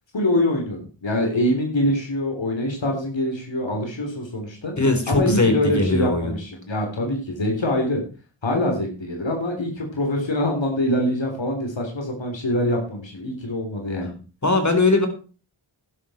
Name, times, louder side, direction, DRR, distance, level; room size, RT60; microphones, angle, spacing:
voice 1, 0.1-4.7 5.1-8.0 8.4-14.1, left 1 dB, 65° left, 2 dB, 4.0 m, -24 dB
voice 2, 4.8-6.4 14.4-15.1, left 2 dB, 35° left, 6 dB, 4.2 m, -20 dB
12.0 x 11.0 x 4.5 m, 0.37 s
cardioid pair, 50°, 47 cm